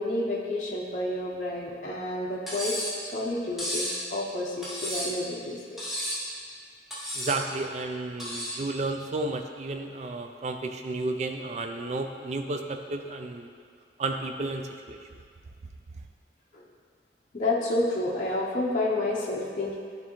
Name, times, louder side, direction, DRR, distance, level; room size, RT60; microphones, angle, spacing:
voice 1, 0.0-2.8 3.0-5.6 17.3-19.8, left 2 dB, 45° left, -4 dB, 0.6 m, -29 dB
Cutlery silverware, 2.5-3.0 3.6-4.0 4.6-5.2 5.8-6.3 6.9-7.4 8.2-8.6, equal, ahead, 1.1 m, -32 dB
voice 2, 7.1-13.5 14.0-15.1, right 2 dB, 40° right, 5 dB, 0.3 m, -32 dB
9.5 x 3.6 x 3.0 m, 2.1 s
head